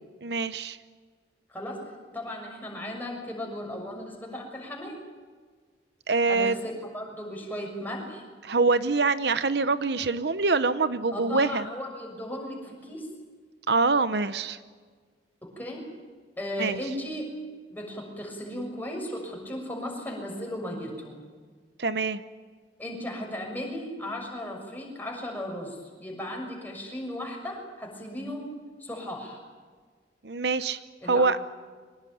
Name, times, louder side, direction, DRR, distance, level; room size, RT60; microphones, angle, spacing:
voice 1, 0.2-0.8 6.1-6.6 8.4-11.7 13.7-14.6 16.6-16.8 21.8-22.2 30.2-30.8 31.1-31.4, right 3 dB, 65° right, 13 dB, 0.9 m, -24 dB
voice 2, 1.5-1.8 2.1-5.0 6.3-8.3 11.1-13.1 15.4-15.9 16.4-17.3 17.7-21.2 22.8-28.5 28.8-29.4 31.0-31.3, left 1 dB, 10° left, 0 dB, 6.3 m, -36 dB
24.0 x 20.5 x 9.5 m, 1.5 s
head